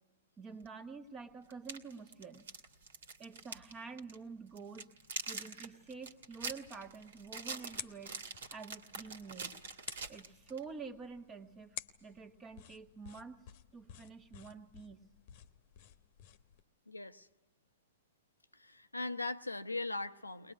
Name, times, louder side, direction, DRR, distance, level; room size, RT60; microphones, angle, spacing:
voice 1, 0.4-2.4 3.2-4.9 5.3-8.1 8.5-9.6 10.1-13.4 13.7-15.1, right 5 dB, 20° right, 8 dB, 1.5 m, -48 dB
sound 1, 0.6-0.7 1.5-3.7 4.0-4.2 4.6-10.6, right 5 dB, 65° right, 2.2 m, -44 dB
sound 2, 6.6-16.6, left 11 dB, 45° left, 1.1 m, -53 dB
voice 2, 16.9-17.3 18.5-20.5, left 2 dB, 85° left, 10 dB, 0.8 m, -39 dB
22.0 x 20.5 x 9.9 m, 1.1 s
figure-of-eight pair, 110°, 0 cm